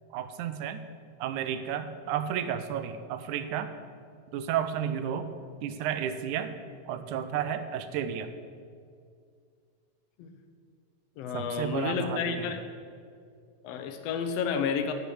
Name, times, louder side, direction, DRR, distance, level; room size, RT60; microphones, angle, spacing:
voice 1, 0.1-0.8 1.2-3.7 4.3-5.3 5.6-6.6 6.9-8.3 11.3-12.5, right 9 dB, 85° right, 10 dB, 2.1 m, -32 dB
voice 2, 11.2-12.6 13.6-14.9, left 6 dB, 70° left, 7 dB, 1.7 m, -31 dB
10.5 x 8.1 x 6.3 m, 2.2 s
omnidirectional pair, 3.5 m